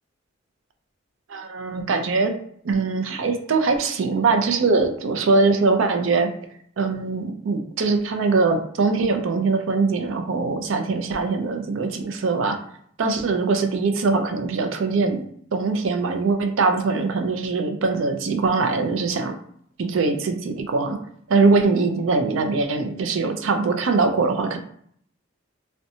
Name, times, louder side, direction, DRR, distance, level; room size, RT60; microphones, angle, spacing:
voice 1, 1.3-2.3 2.6-6.3 6.8-12.6 13.0-15.2 15.5-19.4 19.8-21.0 21.3-24.6, right 4 dB, 75° right, 6 dB, 0.4 m, -22 dB
2.6 x 2.1 x 2.6 m, 0.63 s
head